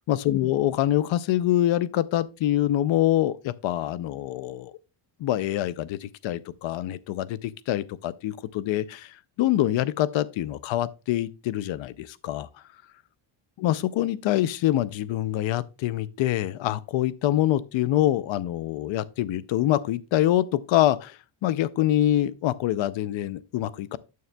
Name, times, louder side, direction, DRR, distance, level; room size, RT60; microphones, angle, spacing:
voice 1, 0.1-4.7 5.2-12.5 13.6-24.0, left 13 dB, 75° left, 0.6 m, -25 dB
9.3 x 6.9 x 2.2 m
cardioid pair, 100°, 47 cm